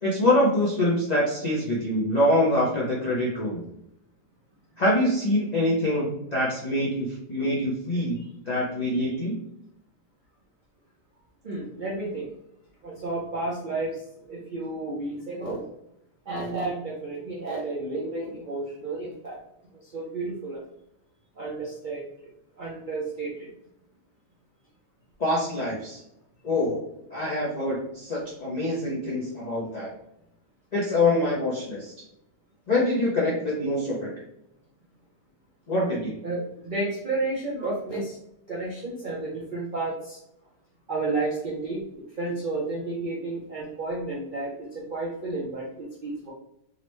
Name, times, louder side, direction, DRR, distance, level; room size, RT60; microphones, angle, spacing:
voice 1, 0.0-3.6 4.8-8.2 8.5-9.4 25.2-26.0 26.4-26.8 27.1-29.9 30.7-31.9 32.7-34.1 35.7-36.2, left 1 dB, 85° left, -6 dB, 0.3 m, -25 dB
voice 2, 11.4-12.3 12.8-15.6 16.3-19.4 19.7-20.6 21.4-22.0 22.6-23.5 36.2-38.2 38.5-40.2 40.9-41.8 42.2-46.3, right 2 dB, 70° right, -5 dB, 0.4 m, -31 dB
3.8 x 2.1 x 3.0 m, 0.79 s
omnidirectional pair, 1.8 m